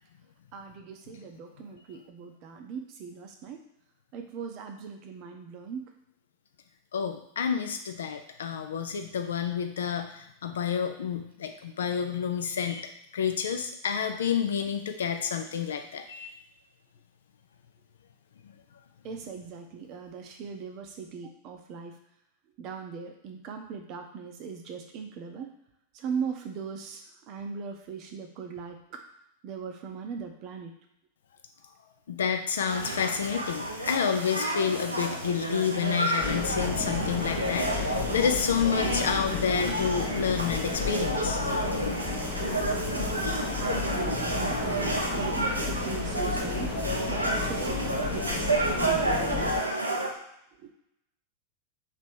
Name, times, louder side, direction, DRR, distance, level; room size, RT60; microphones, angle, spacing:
voice 1, 0.5-3.6 4.1-5.8 19.0-22.0 22.6-25.5 25.9-29.0 29.4-30.7 43.6-46.8 47.1-49.5 50.6-50.7, right 6 dB, 40° right, 4 dB, 0.7 m, -39 dB
voice 2, 6.9-16.3 32.1-41.4, left 7 dB, 65° left, 6 dB, 0.4 m, -29 dB
sound 1, 32.7-50.1, right 1 dB, 85° right, 0.6 m, -30 dB
sound 2, 36.2-49.6, left 6 dB, 30° left, 0.7 m, -34 dB
3.4 x 2.9 x 4.6 m, 0.80 s
figure-of-eight pair, 90°, 0 cm